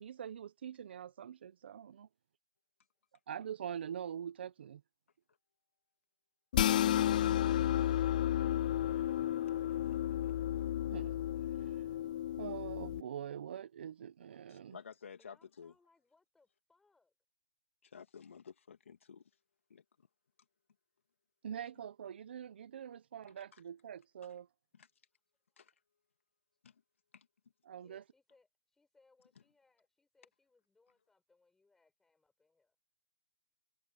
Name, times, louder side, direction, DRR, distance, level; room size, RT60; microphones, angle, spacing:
voice 1, 0.0-2.1 3.3-4.8 10.9-11.9 12.4-14.8 21.4-24.5 27.6-28.0, right 9 dB, 50° right, 0.9 m, -44 dB
voice 2, 2.8-3.2 15.2-17.1 25.1-25.2 25.5-25.6 27.8-32.8, left 3 dB, 5° left, 5.4 m, -72 dB
sound 1, 6.5-13.0, left 11 dB, 35° left, 0.3 m, -32 dB
voice 3, 8.8-9.2 9.6-10.3 14.5-15.7 17.8-19.2 19.7-19.8 23.5-23.6 24.7-24.9 25.6-25.7 26.6-26.7 27.1-27.3, left 6 dB, 65° left, 2.8 m, -54 dB
hypercardioid pair, 160°, 7 cm